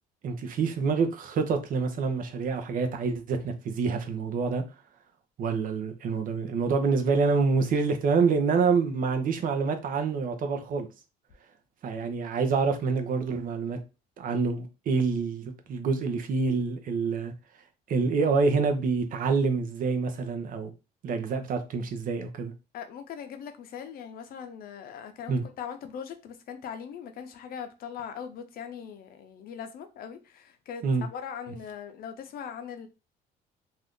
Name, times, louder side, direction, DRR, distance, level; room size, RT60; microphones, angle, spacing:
voice 1, 0.2-4.6 5.4-10.9 11.8-13.8 14.2-17.3 17.9-20.7 21.0-22.5 25.3-25.4 30.8-31.1, right 4 dB, 55° right, 0.7 m, -27 dB
voice 2, 22.7-32.9, left 7 dB, 60° left, 0.6 m, -40 dB
2.7 x 2.5 x 3.5 m
cardioid pair, 110°, 17 cm